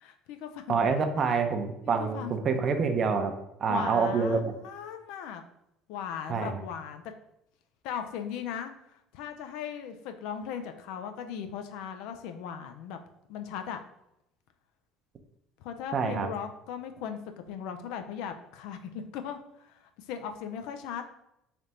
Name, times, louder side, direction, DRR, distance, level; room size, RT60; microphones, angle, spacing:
voice 1, 0.0-0.8 2.0-2.4 3.7-5.4 5.9-7.0 7.8-8.7 9.1-13.0 13.3-13.8 15.6-17.2 17.5-19.4 19.7-19.8 20.1-21.0, left 8 dB, 75° left, 7 dB, 0.4 m, -38 dB
voice 2, 0.7-3.3 3.6-4.5 6.3-6.6 15.9-16.3, right 5 dB, 45° right, 6 dB, 0.6 m, -27 dB
3.4 x 2.5 x 4.2 m, 0.82 s
supercardioid pair, 85°, 0 cm